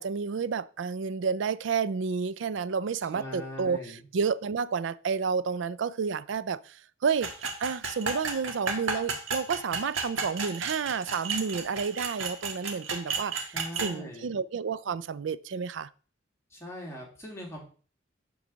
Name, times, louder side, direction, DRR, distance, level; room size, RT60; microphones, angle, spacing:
voice 1, 0.0-15.9, right 5 dB, 65° right, 0.4 m, -30 dB
voice 2, 3.1-4.0 13.5-14.4 16.5-17.6, left 1 dB, 15° left, 2.3 m, -41 dB
sound 1, 7.2-13.9, right 4 dB, 85° right, 1.6 m, -33 dB
7.3 x 4.0 x 6.1 m
head